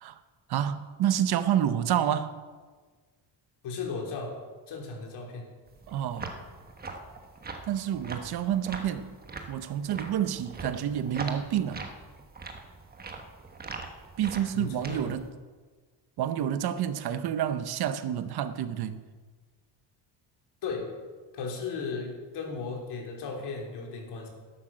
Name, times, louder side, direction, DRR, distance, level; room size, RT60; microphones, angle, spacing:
voice 1, 0.5-2.3 5.9-6.3 7.7-9.1 9.5-11.8 14.2-15.3 16.2-19.0, right 10 dB, 55° right, 0.8 m, -29 dB
voice 2, 3.6-4.4 4.7-5.5 14.5-15.1 20.6-20.9 21.3-24.3, left 4 dB, 60° left, 3.5 m, -35 dB
sound 1, 5.7-15.3, right 3 dB, 20° right, 1.2 m, -42 dB
13.0 x 12.0 x 6.3 m
cardioid pair, 165°, 45 cm